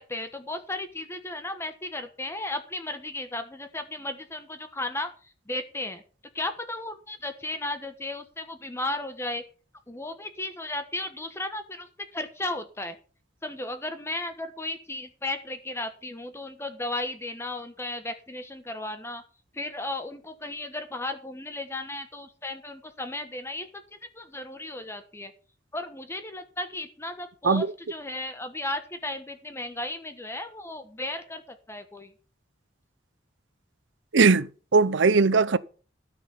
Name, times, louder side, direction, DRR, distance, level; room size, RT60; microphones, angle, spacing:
voice 1, 0.0-5.1 5.5-6.0 6.3-9.4 9.9-11.9 12.1-13.0 13.4-19.2 19.5-23.8 24.1-25.3 25.7-32.1, left 2 dB, 15° left, 1.2 m, -35 dB
voice 2, 34.1-35.6, right 4 dB, 80° right, 0.7 m, -20 dB
13.5 x 6.0 x 6.9 m
head